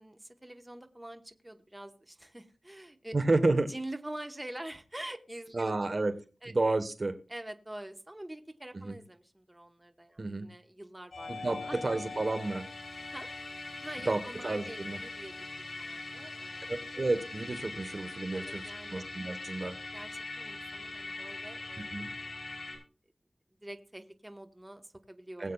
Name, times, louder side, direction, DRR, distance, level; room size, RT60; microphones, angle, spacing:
voice 1, 0.0-3.1 3.7-5.9 6.4-6.5 7.3-12.0 13.1-13.3 13.8-16.7 18.3-19.1 19.9-20.1 20.4-22.3 23.6-25.5, right 1 dB, 20° right, 7 dB, 1.1 m, -45 dB
voice 2, 3.1-3.7 5.5-6.1 6.5-7.2 8.7-9.0 10.2-10.5 11.3-12.7 14.1-15.0 16.7-19.8 21.9-22.1 25.4-25.5, right 2 dB, 50° right, 9 dB, 1.1 m, -31 dB
Musical instrument, 11.1-22.8, left 3 dB, 70° left, 5.5 m, -42 dB
20.5 x 8.3 x 2.3 m, 0.35 s
wide cardioid pair, 70°, 0 cm